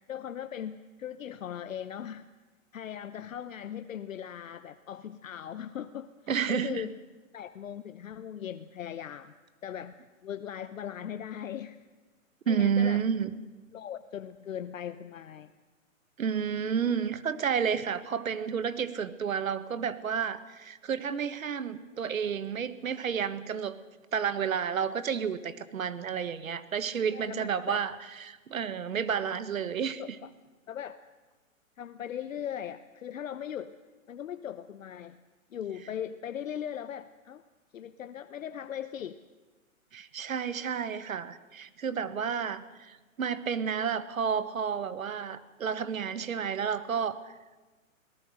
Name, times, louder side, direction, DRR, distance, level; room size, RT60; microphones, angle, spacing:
voice 1, 0.1-2.3 2.7-6.1 6.5-7.0 7.3-9.3 9.6-11.9 12.5-13.0 13.7-15.5 27.1-27.8 30.0-30.3 30.7-31.0 31.8-33.8 34.1-35.2 35.5-37.4 37.7-39.2, left 9 dB, 70° left, 11 dB, 1.0 m, -39 dB
voice 2, 6.3-6.8 12.5-13.3 16.2-23.8 24.1-30.2 39.9-47.3, right 7 dB, 75° right, 13 dB, 1.5 m, -31 dB
23.5 x 18.5 x 6.5 m, 1.2 s
hypercardioid pair, 135°, 41 cm